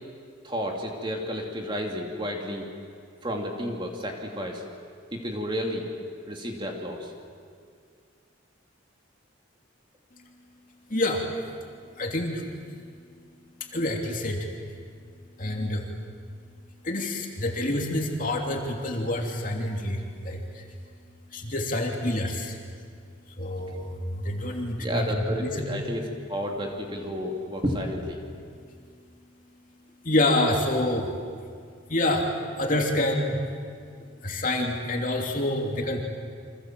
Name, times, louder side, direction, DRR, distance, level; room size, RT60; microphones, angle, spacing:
voice 1, 0.4-2.7 3.2-4.6 5.1-5.8 6.3-7.1 24.8-28.2, equal, 25° right, 1 dB, 2.8 m, -31 dB
voice 2, 10.9-11.3 12.0-12.4 13.7-14.5 15.4-15.9 16.8-20.6 21.3-22.6 23.4-25.0 25.3-25.7 30.0-31.1 31.9-32.3 32.6-33.4 34.2-36.0, left 1 dB, 40° left, 1 dB, 3.2 m, -27 dB
29.5 x 25.5 x 7.7 m, 2.2 s
head